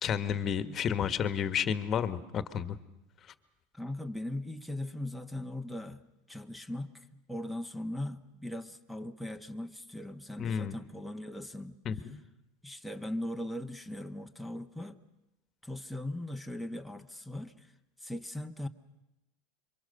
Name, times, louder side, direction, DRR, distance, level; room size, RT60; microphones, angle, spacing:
voice 1, 0.0-2.8 10.4-10.7 11.8-12.2, left 8 dB, 35° left, 12 dB, 1.5 m, -31 dB
voice 2, 3.7-6.0 6.3-11.8 12.6-15.0 15.6-17.7 18.0-18.7, left 1 dB, ahead, 11 dB, 1.3 m, -39 dB
27.0 x 24.0 x 6.8 m, 0.94 s
hypercardioid pair, 105°, 0 cm